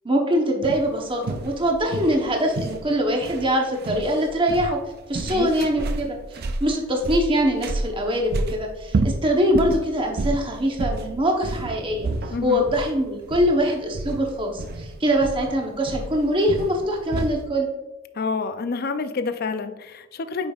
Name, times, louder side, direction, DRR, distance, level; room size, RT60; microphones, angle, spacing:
voice 1, 0.0-4.8 5.1-12.1 12.4-17.7, equal, 25° right, 1 dB, 1.0 m, -23 dB
sound 1, 0.6-17.5, right 2 dB, 45° right, 0.5 m, -30 dB
voice 2, 12.3-12.7 18.1-20.5, left 4 dB, 45° left, 10 dB, 0.5 m, -28 dB
8.8 x 5.2 x 2.4 m, 1.1 s
head